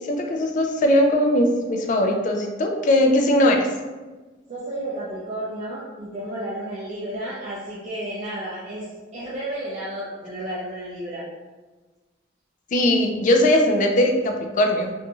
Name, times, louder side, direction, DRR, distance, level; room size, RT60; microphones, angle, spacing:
voice 1, 0.1-3.7 12.7-14.9, left 1 dB, 45° left, 3 dB, 0.3 m, -19 dB
voice 2, 4.5-11.2, right 1 dB, 40° right, -8 dB, 0.5 m, -32 dB
2.8 x 2.5 x 2.3 m, 1.3 s
head